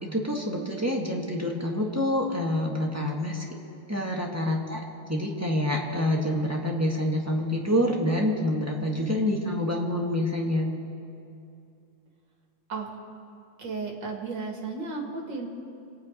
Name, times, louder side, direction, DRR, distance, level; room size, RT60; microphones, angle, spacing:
voice 1, 0.0-3.4 3.9-10.7, left 1 dB, 10° right, -1 dB, 1.2 m, -27 dB
voice 2, 13.6-15.5, right 4 dB, 60° right, 1 dB, 2.4 m, -34 dB
25.5 x 9.3 x 5.2 m, 2.6 s
omnidirectional pair, 2.3 m